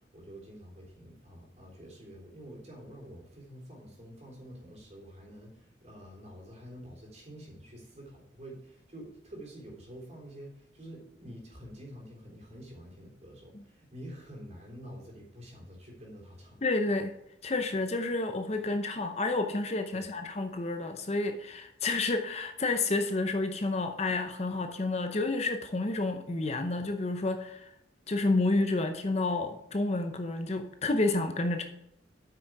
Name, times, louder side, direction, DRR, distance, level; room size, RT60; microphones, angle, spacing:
voice 1, 0.1-16.6 19.9-20.1, equal, 35° right, -2 dB, 3.3 m, -48 dB
voice 2, 16.6-17.1 17.4-27.7 28.1-31.6, left 2 dB, 35° left, 7 dB, 0.7 m, -30 dB
8.6 x 6.1 x 4.7 m, 0.81 s
head